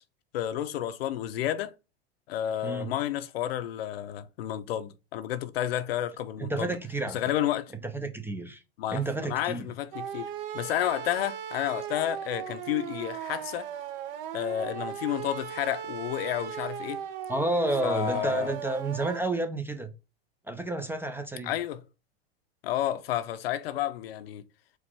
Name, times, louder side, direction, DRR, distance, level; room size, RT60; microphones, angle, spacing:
voice 1, 0.3-1.7 2.3-6.8 7.1-7.7 8.8-10.3 10.5-13.7 14.3-17.0 17.8-18.5 21.4-21.8 22.6-24.4, left 12 dB, 70° left, 0.7 m, -31 dB
voice 2, 6.4-7.2 7.8-8.6 8.9-9.7 17.3-19.9 20.5-21.5, right 2 dB, 5° right, 0.4 m, -30 dB
sound 1, 9.9-19.2, right 9 dB, 55° right, 0.7 m, -37 dB
4.7 x 2.5 x 4.0 m
hypercardioid pair, 105°, 32 cm